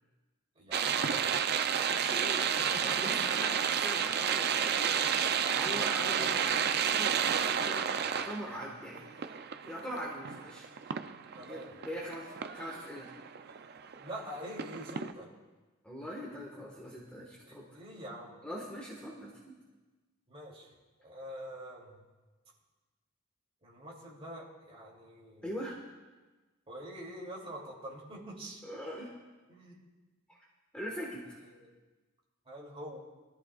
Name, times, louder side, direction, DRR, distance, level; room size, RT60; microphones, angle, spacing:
voice 1, 0.5-1.4 2.7-3.6 5.4-6.3 11.3-11.8 14.0-15.3 17.4-18.4 20.3-20.7 21.0-22.0 23.6-25.5 26.7-28.6 29.5-29.8 31.4-31.7 32.5-33.0, right 1 dB, 30° right, -4 dB, 2.8 m, -45 dB
sound 1, 0.7-14.2 14.6-15.1, right 8 dB, 50° right, 0.5 m, -31 dB
voice 2, 1.8-9.4 9.6-10.7 11.5-13.1 15.8-17.7 18.4-19.6 25.4-25.8 28.6-29.1 30.3-30.4 30.7-31.4, equal, 5° left, -3 dB, 1.5 m, -42 dB
21.0 x 13.5 x 2.4 m, 1.2 s
head